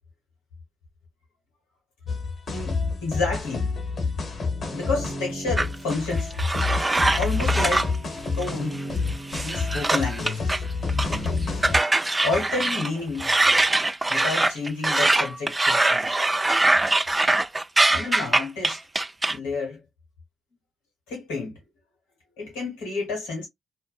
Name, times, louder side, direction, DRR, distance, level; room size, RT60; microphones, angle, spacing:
sound 1, 2.1-11.8, left 4 dB, 55° left, 0.9 m, -28 dB
voice 1, 2.5-3.7 4.6-6.4 7.1-7.9 8.4-8.8 9.4-10.6 12.2-13.4 14.1-16.1 17.9-18.8 19.3-19.8 21.1-21.6 22.4-23.5, left 3 dB, 85° left, 1.2 m, -30 dB
sound 2, 5.6-8.0 8.4-8.8 9.1-10.6 10.9-11.3 11.6-12.9 13.2-19.4, right 2 dB, 25° right, 0.3 m, -22 dB
2.5 x 2.1 x 2.3 m
hypercardioid pair, 40°, 0 cm